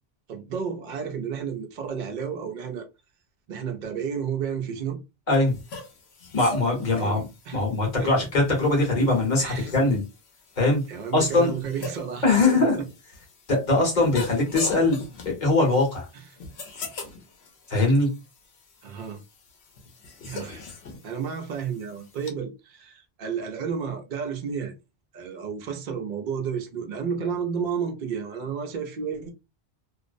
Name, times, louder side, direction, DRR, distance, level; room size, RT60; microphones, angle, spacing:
voice 1, 0.3-2.9 3.5-5.0 6.9-7.6 8.0-8.3 9.4-9.7 10.9-12.8 16.1-16.4 18.8-19.2 20.2-20.7 21.0-24.7 25.1-29.3, right 7 dB, 55° right, 0.6 m, -32 dB
sound 1, 5.5-22.3, left 4 dB, 85° left, 1.0 m, -41 dB
voice 2, 6.3-7.2 7.5-10.0 10.6-10.8 11.1-11.5 12.2-12.8 13.5-15.0 15.2-16.1 17.7-18.1, left 2 dB, 50° left, 1.1 m, -21 dB
2.5 x 2.0 x 2.4 m
omnidirectional pair, 1.1 m